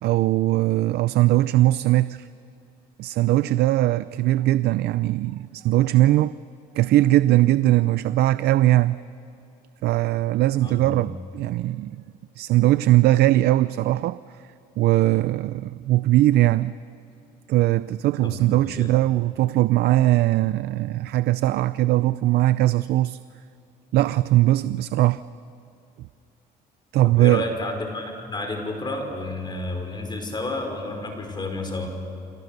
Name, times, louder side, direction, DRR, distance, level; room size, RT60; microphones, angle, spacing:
voice 1, 0.0-2.3 3.0-6.3 6.7-9.0 9.8-12.0 12.4-14.2 14.8-16.7 17.5-23.2 23.9-25.2 26.9-27.4, right 15 dB, 70° right, 15 dB, 0.5 m, -20 dB
voice 2, 10.6-11.0 18.2-18.9 27.0-31.9, left 2 dB, 25° left, 4 dB, 5.4 m, -31 dB
28.5 x 27.0 x 6.7 m, 2.8 s
cardioid pair, 110°, 17 cm